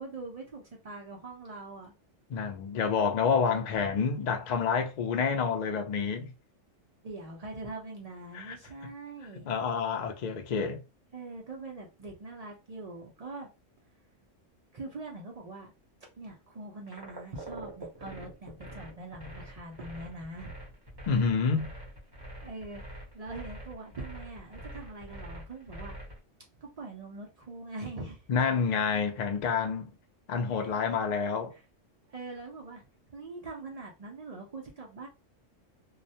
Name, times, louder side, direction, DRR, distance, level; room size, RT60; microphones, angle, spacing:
voice 1, 0.0-1.9 3.8-3.9 7.0-9.5 11.1-13.5 14.7-15.7 16.2-20.5 22.4-26.0 26.6-28.2 30.5-30.8 31.5-31.6 32.1-32.8 33.1-35.1, right 2 dB, 60° right, 0.4 m, -43 dB
voice 2, 2.3-6.3 8.3-8.6 9.5-10.8 21.1-21.7 28.3-29.9 30.3-31.5, left 6 dB, 70° left, 0.4 m, -28 dB
sound 1, 16.9-26.2, right 1 dB, 20° right, 0.8 m, -44 dB
2.3 x 2.1 x 2.7 m
omnidirectional pair, 1.3 m